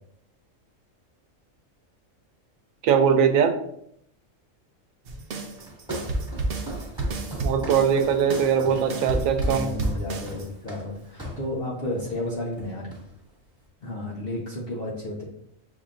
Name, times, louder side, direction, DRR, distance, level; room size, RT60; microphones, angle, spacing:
voice 1, 2.8-3.6 7.4-9.7, right 7 dB, 85° right, 8 dB, 1.0 m, -21 dB
sound 1, 5.0-10.5, right 2 dB, 55° right, 0.7 m, -30 dB
Walk footsteps, 5.5-11.5 12.0-12.2 12.5-13.3, right 1 dB, 5° right, 1.5 m, -39 dB
voice 2, 8.6-12.9 13.8-15.2, left 1 dB, 50° left, -4 dB, 0.9 m, -33 dB
7.0 x 2.8 x 2.5 m, 0.72 s
omnidirectional pair, 1.4 m